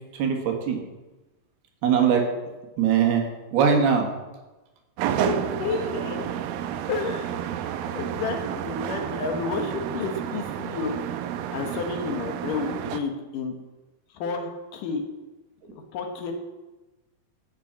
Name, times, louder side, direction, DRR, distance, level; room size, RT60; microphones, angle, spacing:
voice 1, 0.1-0.8 1.8-2.3 2.8-4.1, right 7 dB, 70° right, 3 dB, 3.5 m, -21 dB
sound 1, 5.0-13.0, right 9 dB, 85° right, 2.1 m, -30 dB
voice 2, 5.1-6.3 6.9-7.4 7.8-11.0 11.5-13.5 14.1-15.0 15.6-16.3, left 4 dB, 60° left, 4 dB, 2.5 m, -31 dB
14.0 x 6.7 x 7.4 m, 1.1 s
omnidirectional pair, 4.9 m